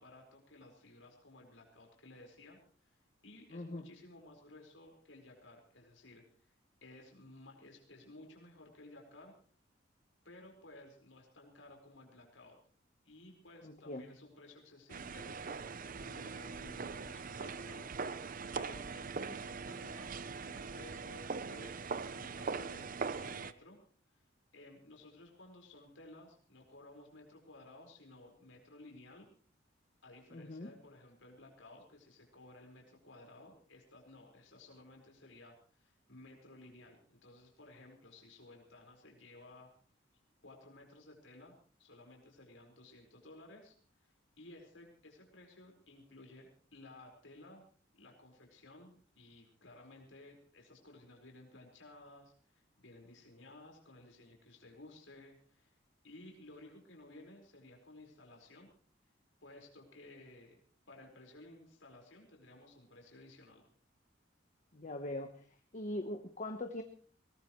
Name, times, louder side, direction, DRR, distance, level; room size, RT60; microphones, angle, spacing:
voice 1, 0.0-2.9 3.2-6.2 6.8-9.3 10.2-12.6 13.0-17.9 18.5-20.2 20.4-23.8 24.1-24.2 24.5-29.3 30.0-39.7 40.4-43.7 44.0-47.6 47.9-55.8 56.0-58.7 59.4-60.6 60.9-63.6, left 2 dB, 85° left, 1 dB, 4.8 m, -56 dB
voice 2, 3.5-3.9 13.6-14.1 30.3-30.7 64.7-65.5 65.7-66.8, left 1 dB, 40° left, 6 dB, 1.1 m, -41 dB
sound 1, 14.9-23.5, right 5 dB, 45° right, 0.7 m, -41 dB
22.0 x 19.0 x 3.2 m, 0.43 s
head